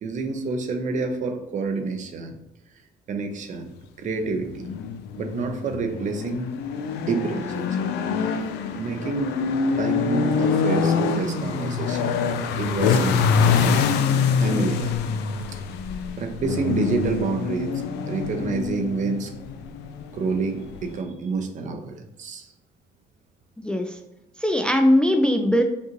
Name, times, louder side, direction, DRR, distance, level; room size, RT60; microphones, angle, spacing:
voice 1, 0.0-2.3 3.1-4.7 5.2-6.5 7.0-7.8 8.7-9.3 9.8-13.8 14.4-15.0 15.5-15.6 16.2-19.3 20.1-22.5, right 4 dB, 50° right, 6 dB, 0.6 m, -28 dB
sound 1, 4.4-21.0, left 6 dB, 85° left, 0.5 m, -25 dB
voice 2, 23.6-24.0 24.4-25.6, left 1 dB, 5° left, 4 dB, 0.3 m, -20 dB
5.3 x 2.5 x 3.0 m, 0.90 s
cardioid pair, 110°, 17 cm